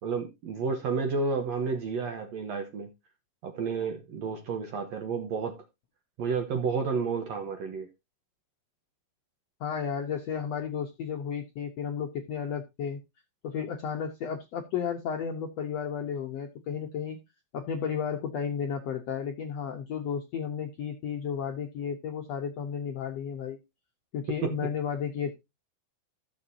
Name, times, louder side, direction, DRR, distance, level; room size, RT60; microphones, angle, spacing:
voice 1, 0.0-2.9 3.4-5.7 6.2-7.9 24.4-24.7, right 4 dB, 65° right, 1.7 m, -31 dB
voice 2, 9.6-13.0 13.4-17.2 17.5-23.6 24.1-25.3, left 7 dB, 75° left, 1.5 m, -33 dB
15.0 x 7.2 x 2.7 m
omnidirectional pair, 4.3 m